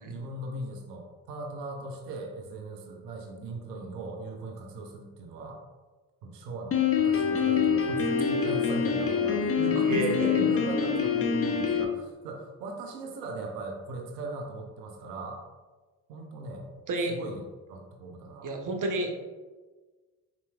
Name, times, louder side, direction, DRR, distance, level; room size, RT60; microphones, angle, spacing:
voice 1, 0.0-5.6 6.2-15.4 16.1-16.7 17.0-17.4 17.7-18.7, right 2 dB, 80° right, 2 dB, 0.6 m, -39 dB
Piano, 6.7-11.8, left 6 dB, 30° left, 0.6 m, -25 dB
voice 2, 9.8-10.5 16.9-17.1 18.4-19.1, right 2 dB, 40° right, 2 dB, 0.8 m, -30 dB
4.3 x 4.0 x 2.3 m, 1.3 s
hypercardioid pair, 45°, 48 cm